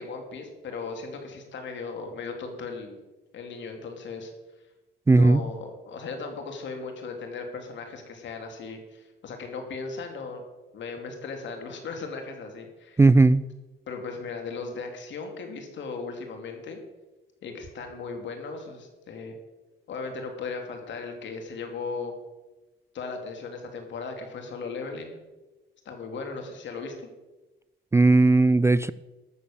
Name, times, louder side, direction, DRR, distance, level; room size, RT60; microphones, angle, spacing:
voice 1, 0.0-3.0 3.3-4.3 5.1-10.4 10.7-13.0 13.9-16.8 17.4-19.3 19.9-22.1 22.9-25.2 25.8-27.1, left 4 dB, 65° left, 4 dB, 2.8 m, -37 dB
voice 2, 5.1-5.4 13.0-13.4 27.9-28.9, right 3 dB, 15° right, 17 dB, 0.3 m, -17 dB
12.5 x 7.1 x 7.1 m, 1.1 s
cardioid pair, 90°, 20 cm